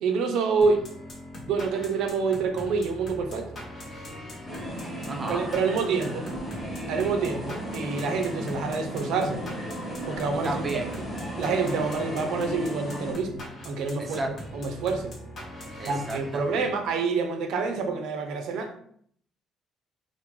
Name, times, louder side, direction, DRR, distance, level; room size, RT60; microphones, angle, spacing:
voice 1, 0.0-0.9 1.4-3.6 5.3-6.3 6.9-9.4 10.1-10.8 11.4-14.2 14.5-15.1 15.9-18.7, right 4 dB, 75° right, 5 dB, 0.5 m, -27 dB
sound 1, 0.6-16.9, left 1 dB, 35° left, 0.9 m, -42 dB
sound 2, 4.4-13.1, equal, 15° left, 1.2 m, -35 dB
voice 2, 5.1-5.4 10.4-10.9 14.0-14.3 15.8-16.7, right 2 dB, 20° right, 1 dB, 0.4 m, -33 dB
3.6 x 2.1 x 3.0 m, 0.63 s
cardioid pair, 160°, 0 cm